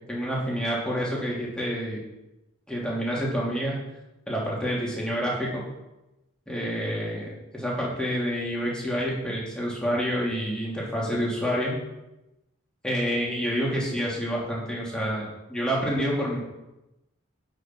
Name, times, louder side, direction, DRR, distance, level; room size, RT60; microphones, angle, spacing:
voice 1, 0.1-2.0 2.7-3.8 4.3-5.6 6.5-11.8 12.8-16.4, equal, 5° left, -5 dB, 2.9 m, -28 dB
9.9 x 6.5 x 6.1 m, 0.96 s
head